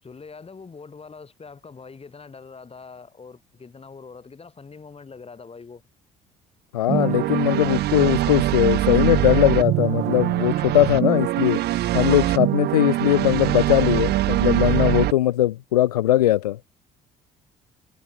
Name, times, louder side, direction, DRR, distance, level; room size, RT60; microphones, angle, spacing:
voice 1, 0.0-5.8, left 5 dB, 30° left, 7.2 m, -43 dB
voice 2, 6.7-11.6 11.9-16.6, left 13 dB, 85° left, 0.7 m, -20 dB
sound 1, 6.9-15.1, right 15 dB, 60° right, 0.9 m, -22 dB
hypercardioid pair, 55°, 19 cm